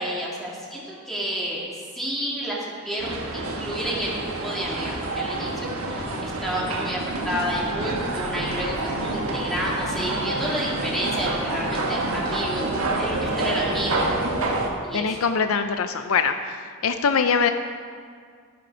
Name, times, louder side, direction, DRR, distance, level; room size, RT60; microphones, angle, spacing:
voice 1, 0.0-1.7 2.0-2.6 2.8-7.0 7.2-12.7 13.0-14.1 14.8-15.2, equal, ahead, -6 dB, 1.9 m, -30 dB
sound 1, 3.0-14.7, right 2 dB, 70° right, 1.5 m, -28 dB
voice 2, 14.9-17.5, left 5 dB, 70° left, 8 dB, 0.5 m, -23 dB
13.0 x 10.5 x 5.1 m, 2.1 s
head